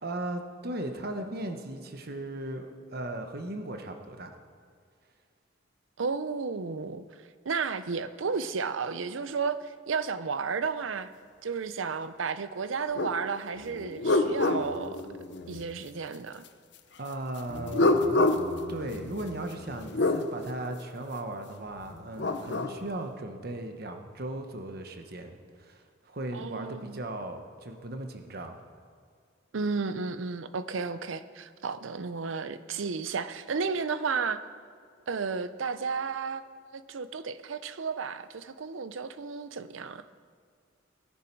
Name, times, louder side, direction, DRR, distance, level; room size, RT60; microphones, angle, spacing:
voice 1, 0.0-4.3 17.0-18.0 18.7-28.6, right 1 dB, 50° right, 6 dB, 1.0 m, -37 dB
voice 2, 6.0-7.0 7.4-11.1 11.4-15.0 15.5-16.4 26.3-27.0 29.5-34.4 35.1-40.0, right 5 dB, 85° right, 13 dB, 0.6 m, -33 dB
sound 1, 13.0-13.2 13.6-15.6 17.5-20.2 21.9-22.8, left 2 dB, 60° left, 0.8 m, -28 dB
18.0 x 10.0 x 4.6 m, 2.2 s
head